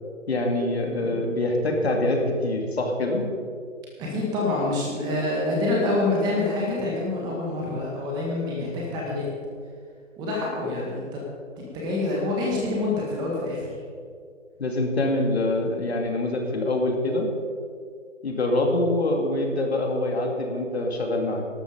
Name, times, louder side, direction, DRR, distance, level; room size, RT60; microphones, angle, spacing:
voice 1, 0.3-3.2 8.6-8.8 10.7-10.8 14.6-17.3 18.2-21.4, left 2 dB, 55° left, 2 dB, 2.5 m, -25 dB
voice 2, 4.0-9.2 10.2-11.2 11.6-13.7, left 2 dB, 10° right, -3 dB, 1.8 m, -26 dB
13.0 x 12.5 x 5.1 m, 2.1 s
figure-of-eight pair, 155°, 38 cm